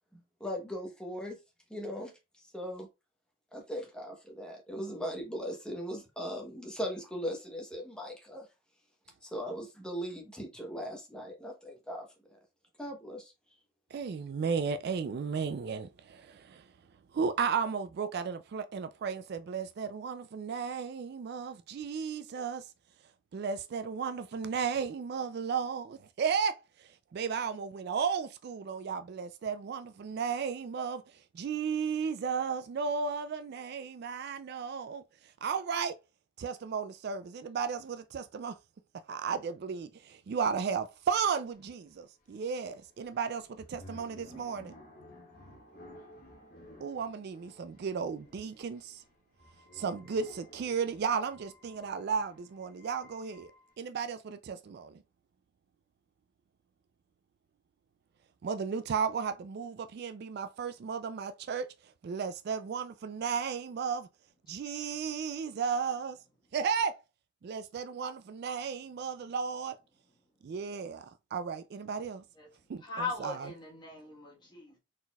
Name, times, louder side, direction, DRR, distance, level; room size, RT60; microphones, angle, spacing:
voice 1, 0.4-1.4 1.7-2.1 2.5-2.9 3.5-8.5 9.2-12.4 12.8-13.3, equal, 5° left, 1.0 m, -39 dB
voice 2, 13.9-16.7 17.1-22.7 23.3-36.0 36.4-38.6 39.1-44.7 46.8-49.0 49.7-53.5 53.8-55.0 58.4-64.1 64.5-66.2 66.5-67.0 67.4-69.8 70.4-72.2 72.7-72.8 73.2-73.5, right 6 dB, 50° right, 0.3 m, -34 dB
sound 1, 41.0-53.7, left 1 dB, 40° left, 1.2 m, -55 dB
voice 3, 64.6-65.1 72.3-72.5 72.8-74.8, left 3 dB, 20° left, 1.3 m, -40 dB
4.2 x 4.0 x 2.3 m
head